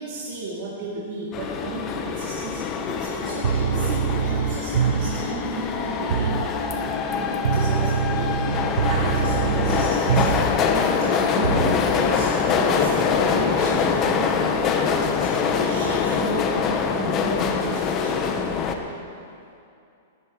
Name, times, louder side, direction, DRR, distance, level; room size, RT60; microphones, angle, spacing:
voice 1, 0.0-15.4 15.6-18.3, right 2 dB, 55° right, -7 dB, 3.1 m, -34 dB
sound 1, 1.3-18.7, left 6 dB, 35° left, 1.3 m, -24 dB
sound 2, 3.2-16.8, left 3 dB, 90° left, 2.5 m, -34 dB
sound 3, 3.4-5.3 6.1-6.5 7.4-10.6 11.4-11.8, right 9 dB, 75° right, 0.5 m, -24 dB
18.0 x 16.0 x 3.4 m, 2.6 s
hypercardioid pair, 110°, 0 cm